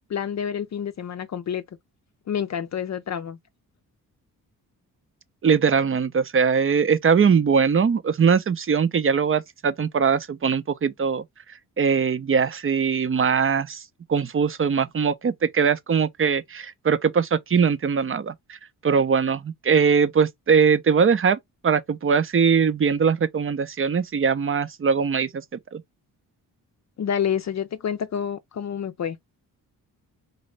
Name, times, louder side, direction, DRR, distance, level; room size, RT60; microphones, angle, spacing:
voice 1, 0.1-1.6 2.3-3.4 27.0-29.2, left 8 dB, 45° left, 0.6 m, -28 dB
voice 2, 5.4-11.2 11.8-13.8 14.1-18.6 18.8-25.4 25.7-25.8, right 6 dB, 35° right, 0.6 m, -21 dB
4.0 x 2.6 x 3.3 m
cardioid pair, 65°, 37 cm